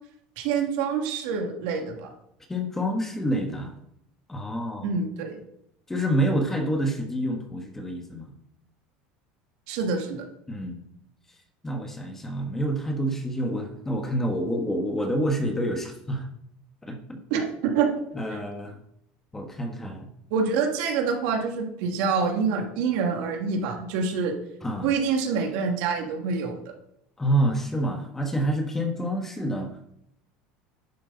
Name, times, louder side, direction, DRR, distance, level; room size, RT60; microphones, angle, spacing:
voice 1, 0.4-2.1 4.8-5.4 9.7-10.2 17.3-17.9 20.3-24.3 24.8-26.7, right 5 dB, 75° right, 2 dB, 2.3 m, -26 dB
voice 2, 2.5-3.7 4.3-4.9 5.9-8.3 10.5-10.8 11.6-16.3 16.8-17.2 18.1-18.8 19.3-20.1 24.6-24.9 27.2-29.7, right 1 dB, 10° left, 4 dB, 1.3 m, -27 dB
11.0 x 8.4 x 4.1 m, 0.75 s
cardioid pair, 150°, 4 cm